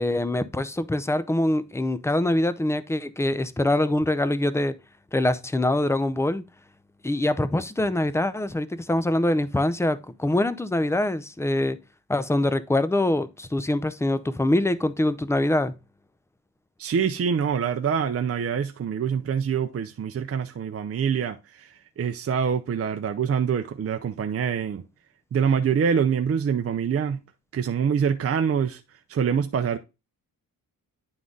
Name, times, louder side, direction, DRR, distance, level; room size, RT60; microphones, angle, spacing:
voice 1, 0.0-4.8 5.1-6.4 7.0-11.8 12.1-15.7, left 1 dB, 10° left, 0.5 m, -24 dB
voice 2, 16.8-24.8 25.3-27.2 27.5-28.8 29.1-29.8, right 7 dB, 40° right, 0.6 m, -25 dB
9.6 x 3.8 x 3.8 m
wide cardioid pair, 115°, 35 cm